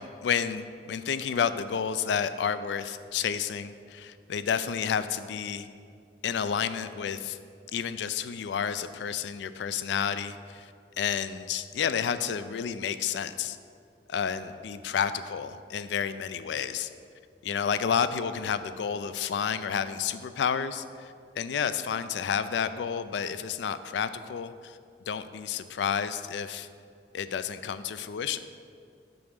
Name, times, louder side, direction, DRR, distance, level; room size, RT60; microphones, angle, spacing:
voice 1, 0.0-5.7 6.2-7.4 7.7-10.7 11.0-13.6 14.1-16.9 17.4-24.8 25.1-26.7 27.1-28.4, left 7 dB, 75° left, 12 dB, 0.3 m, -30 dB
6.9 x 3.9 x 6.4 m, 2.3 s
head